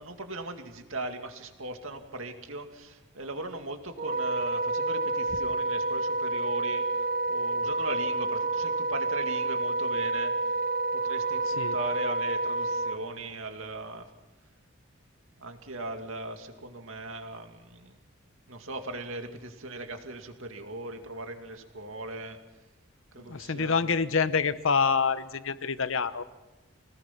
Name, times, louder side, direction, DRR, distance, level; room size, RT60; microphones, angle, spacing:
voice 1, 0.0-10.3 10.9-14.1 15.4-17.9 18.5-22.4 23.1-24.0, right 2 dB, 70° right, 5 dB, 2.4 m, -39 dB
Wind instrument woodwind instrument, 4.0-13.0, right 2 dB, 45° right, 1.2 m, -29 dB
voice 2, 23.2-26.2, left 5 dB, 70° left, 13 dB, 0.9 m, -27 dB
25.5 x 19.0 x 6.0 m, 1.1 s
head